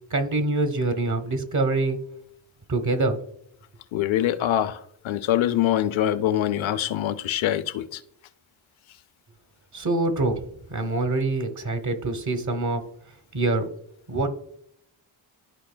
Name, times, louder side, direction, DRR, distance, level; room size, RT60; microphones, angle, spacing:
voice 1, 0.1-2.0 2.7-3.2 9.7-10.4 10.7-12.8 13.3-13.6 14.1-14.3, right 2 dB, 40° right, 1.1 m, -25 dB
voice 2, 3.9-8.0, left 12 dB, 85° left, 0.6 m, -24 dB
12.5 x 5.0 x 2.2 m
cardioid pair, 95°, 46 cm